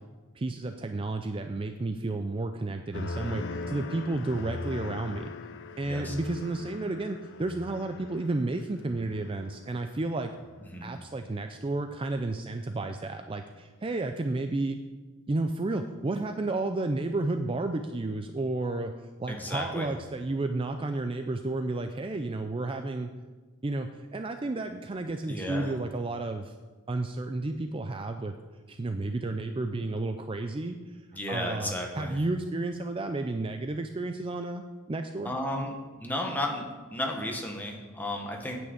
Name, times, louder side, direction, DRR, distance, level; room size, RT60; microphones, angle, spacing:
voice 1, 0.3-5.3 5.8-10.3 10.8-14.8 15.3-23.1 23.6-26.5 26.9-28.3 28.7-31.0 31.3-35.3, right 2 dB, 25° right, 6 dB, 0.4 m, -32 dB
sound 1, 2.9-10.0 10.4-10.9, left 3 dB, 55° left, 0.6 m, -40 dB
voice 2, 19.3-19.9 25.3-25.7 31.1-32.2 35.2-38.6, left 1 dB, 10° left, 1 dB, 1.3 m, -33 dB
9.0 x 6.2 x 8.0 m, 1.3 s
head